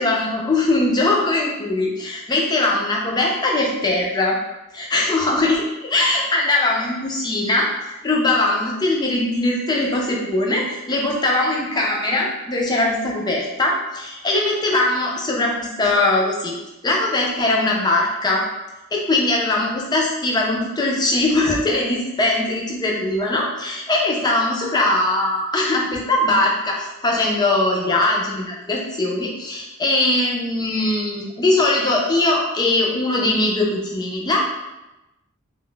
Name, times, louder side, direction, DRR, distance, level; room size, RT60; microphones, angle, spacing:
voice 1, 0.0-4.4 4.7-7.7 8.0-16.6 16.8-18.4 18.9-34.4, left 2 dB, 20° left, -1 dB, 0.4 m, -21 dB
2.2 x 2.0 x 3.7 m, 1.0 s
head